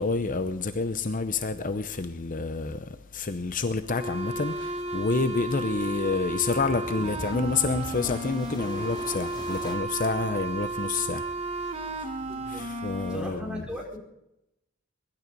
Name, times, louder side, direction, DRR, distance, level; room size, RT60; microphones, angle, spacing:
voice 1, 0.0-13.6, left 3 dB, 45° left, 0.7 m, -29 dB
sound 1, 3.9-13.2, right 2 dB, 30° right, 1.6 m, -33 dB
sound 2, 4.5-9.8, equal, 20° left, 2.4 m, -43 dB
voice 2, 12.2-12.7 13.0-14.0, left 1 dB, 5° right, 4.4 m, -37 dB
22.0 x 12.0 x 5.3 m
head